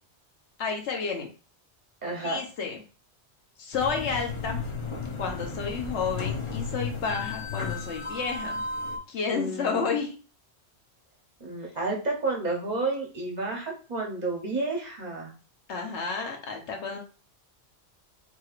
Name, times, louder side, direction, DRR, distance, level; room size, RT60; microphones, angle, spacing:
voice 1, 0.6-1.3 2.2-2.8 3.6-4.6 5.2-8.6 9.1-10.2 15.7-17.0, left 5 dB, 80° left, 2 dB, 1.2 m, -31 dB
voice 2, 2.0-2.4 9.3-9.8 11.4-15.3, right 3 dB, 45° right, 0 dB, 0.9 m, -31 dB
sound 1, 3.7-9.0, left 4 dB, 35° left, 0.6 m, -34 dB
4.5 x 3.0 x 2.4 m, 0.36 s
omnidirectional pair, 1.1 m